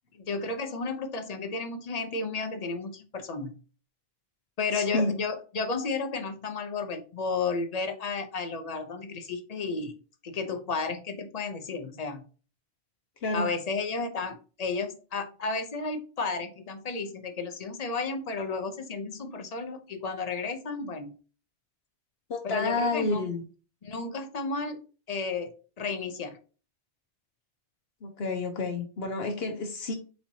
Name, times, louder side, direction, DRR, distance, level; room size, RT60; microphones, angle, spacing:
voice 1, 0.3-3.6 4.6-10.0 10.2-12.2 13.3-21.2 22.4-23.3 23.8-24.8 25.1-26.4, left 4 dB, 40° left, 8 dB, 0.6 m, -32 dB
voice 2, 4.7-5.1 13.2-13.5 22.3-23.4 28.0-30.0, left 3 dB, 65° left, 5 dB, 1.0 m, -29 dB
4.3 x 4.2 x 2.7 m, 0.36 s
omnidirectional pair, 1.2 m